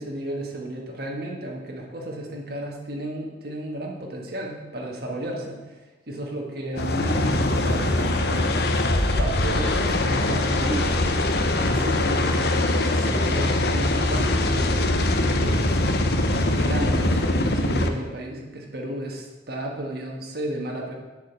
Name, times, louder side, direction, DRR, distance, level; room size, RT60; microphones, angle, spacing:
voice 1, 0.0-5.7 6.1-8.7 9.2-15.0 15.4-15.7 16.4-20.9, right 1 dB, 60° right, 0 dB, 1.5 m, -33 dB
sound 1, 6.8-17.9, left 1 dB, 60° left, 0.8 m, -22 dB
7.5 x 5.0 x 7.3 m, 1.2 s
head